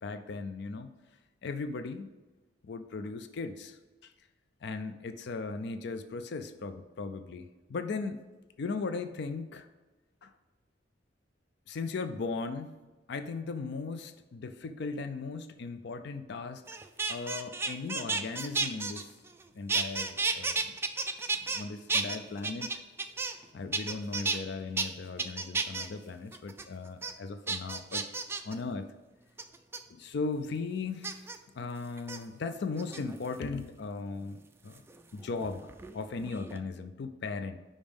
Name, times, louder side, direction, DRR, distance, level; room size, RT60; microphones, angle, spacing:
voice 1, 0.0-0.9 1.4-2.1 2.6-4.1 4.6-8.2 8.6-9.7 10.2-10.3 11.7-12.8 13.1-16.6 17.1-19.1 19.5-20.8 21.4-22.7 23.5-28.0 28.4-28.9 29.9-31.2 31.5-34.8 35.1-35.7 35.9-37.6, left 4 dB, 60° left, 9 dB, 0.4 m, -37 dB
sound 1, 16.7-19.4 19.7-21.6 21.9-23.4 23.7-24.4 24.8-24.9 25.2-25.9 26.3-26.6 27.0-27.1 27.5-28.5 29.4-29.8 31.0-31.4 32.0-32.2 32.8-33.3 34.8-36.0 36.2-36.6, right 4 dB, 15° right, 0.3 m, -32 dB
5.3 x 5.1 x 5.2 m, 1.2 s
head